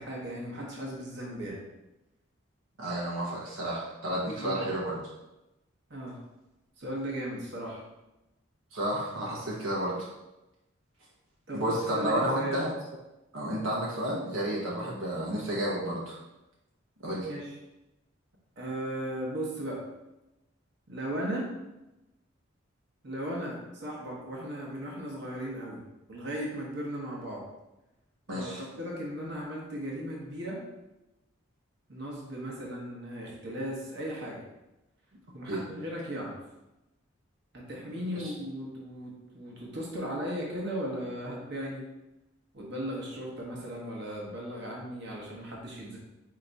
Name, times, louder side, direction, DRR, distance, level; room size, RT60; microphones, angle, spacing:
voice 1, 0.0-1.6 4.2-4.6 5.9-6.2 6.8-7.8 11.5-12.6 17.2-17.5 18.6-19.8 20.9-21.5 23.0-25.8 26.1-27.4 28.3-30.6 31.9-34.4 35.3-36.4 37.5-41.8 42.5-46.0, equal, 55° right, -3 dB, 1.1 m, -36 dB
voice 2, 2.8-5.0 8.7-10.1 11.5-12.7 13.3-16.2 17.0-17.3 28.3-28.6 35.5-35.6 38.1-38.3, right 1 dB, 75° right, -5 dB, 1.0 m, -31 dB
4.6 x 2.9 x 3.9 m, 0.97 s
head